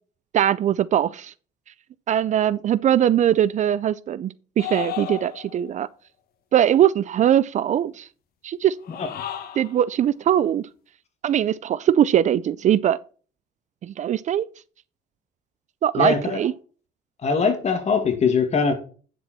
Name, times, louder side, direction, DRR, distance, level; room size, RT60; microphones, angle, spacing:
voice 1, 0.3-1.3 2.1-5.9 6.5-8.1 8.4-8.8 9.6-10.7 11.2-13.0 13.8-14.5 15.8-16.5, right 10 dB, 45° right, 0.4 m, -21 dB
sound 1, 4.6-5.7 8.8-9.8, left 10 dB, 65° left, 1.6 m, -33 dB
voice 2, 16.0-16.4 17.2-18.7, left 5 dB, 40° left, 2.3 m, -21 dB
9.5 x 7.0 x 4.4 m
cardioid pair, 110°, 17 cm